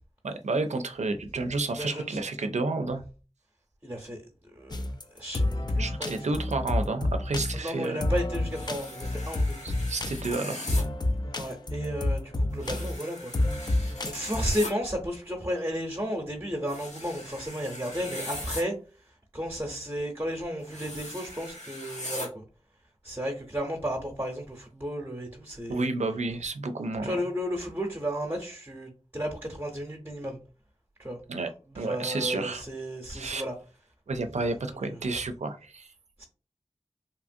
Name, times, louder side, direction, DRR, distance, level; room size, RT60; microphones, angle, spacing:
voice 1, 0.2-3.0 5.8-8.1 9.6-10.7 25.7-27.2 31.3-31.5 31.8-32.6 33.1-33.4 34.1-35.9, right 3 dB, 80° right, 0.4 m, -31 dB
voice 2, 1.8-2.2 3.8-4.2 4.5-4.8 5.1-6.2 7.5-9.6 11.3-18.7 19.0-22.4 23.0-25.9 27.0-30.4 31.0-31.2 31.7-33.6 34.9-35.0 36.2-36.3, equal, 20° right, 0.7 m, -33 dB
sound 1, 4.7-14.4, left 1 dB, 35° left, 0.4 m, -29 dB
sound 2, 8.5-10.8 12.6-14.7 16.7-18.6 20.6-22.3, left 1 dB, 85° left, 1.1 m, -40 dB
2.9 x 2.5 x 2.5 m
wide cardioid pair, 45°, 12 cm